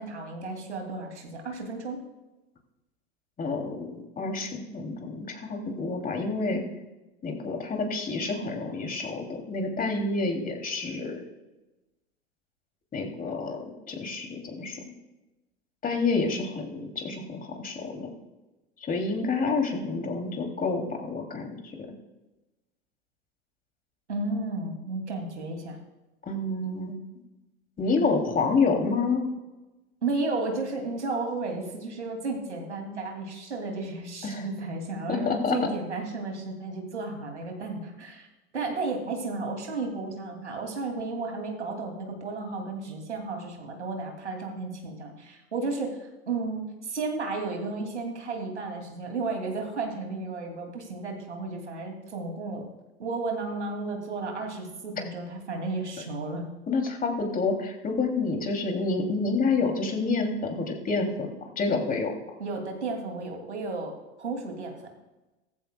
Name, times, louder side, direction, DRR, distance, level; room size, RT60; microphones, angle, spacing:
voice 1, 0.0-2.0 24.1-25.8 30.0-38.3 38.5-52.7 53.0-56.5 62.4-64.8, right 3 dB, 90° right, 2 dB, 2.7 m, -33 dB
voice 2, 3.4-6.6 7.2-11.2 12.9-14.8 15.8-18.1 18.8-21.9 26.3-27.0 27.8-29.3 34.2-34.4 35.1-35.7 56.7-62.2, left 3 dB, 25° left, 3 dB, 2.8 m, -28 dB
16.5 x 15.0 x 2.3 m, 1.1 s
hypercardioid pair, 90°, 33 cm